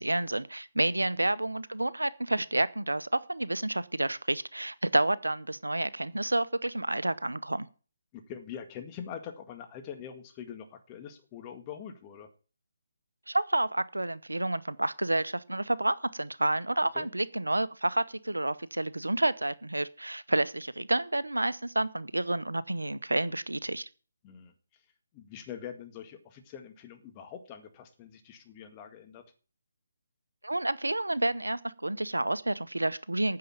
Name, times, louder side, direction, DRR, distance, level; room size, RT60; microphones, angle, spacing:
voice 1, 0.0-7.7 13.3-23.9 30.4-33.4, right 2 dB, 90° right, 17 dB, 0.7 m, -29 dB
voice 2, 8.1-12.3 16.9-17.1 24.2-24.5 25.1-29.2, left 8 dB, 25° left, 6 dB, 1.9 m, -44 dB
9.5 x 6.7 x 8.9 m, 0.38 s
figure-of-eight pair, 150°, 0 cm